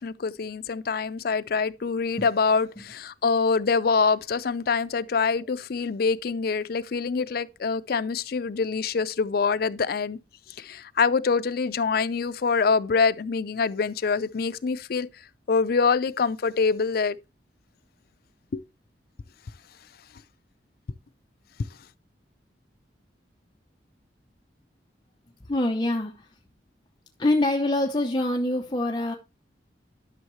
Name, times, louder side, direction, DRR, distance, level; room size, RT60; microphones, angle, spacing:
voice 1, 0.0-10.2 10.6-15.1 15.5-17.2 18.5-18.6, left 5 dB, 55° left, 0.4 m, -25 dB
voice 2, 25.5-26.3 27.2-29.1, left 1 dB, 25° left, 0.7 m, -25 dB
11.0 x 6.3 x 3.1 m
head